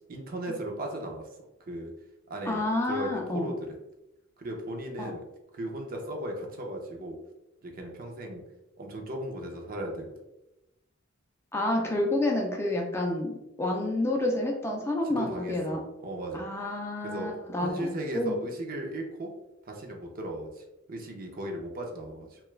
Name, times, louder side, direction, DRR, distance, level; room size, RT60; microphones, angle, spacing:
voice 1, 0.1-1.2 1.7-1.9 2.3-2.6 2.9-3.6 4.4-5.2 5.5-7.2 7.6-8.4 8.8-10.1 15.2-16.5 17.1-17.3 17.6-19.3 19.6-22.4, right 1 dB, 45° right, 1 dB, 0.6 m, -36 dB
voice 2, 2.5-3.5 5.0-5.1 11.5-15.8 16.3-18.4, left 1 dB, 15° left, 0 dB, 0.4 m, -29 dB
2.8 x 2.3 x 3.1 m, 0.92 s
head